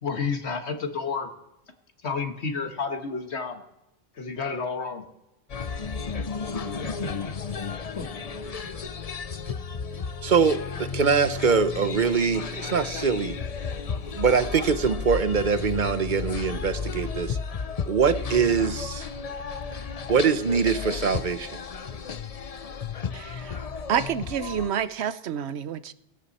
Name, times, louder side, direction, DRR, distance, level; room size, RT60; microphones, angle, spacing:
voice 1, 0.0-1.3 2.0-3.6 4.2-5.1 6.8-7.3 8.0-8.1, left 5 dB, 90° left, 1.8 m, -31 dB
sound 1, 5.5-24.7, left 5 dB, 40° left, 0.7 m, -33 dB
voice 2, 10.2-13.4 14.2-17.4 17.9-19.1 20.1-21.6, right 6 dB, 50° right, 0.9 m, -23 dB
voice 3, 23.1-23.5 23.9-25.9, right 8 dB, 80° right, 1.0 m, -28 dB
17.5 x 16.5 x 4.2 m
omnidirectional pair, 1.1 m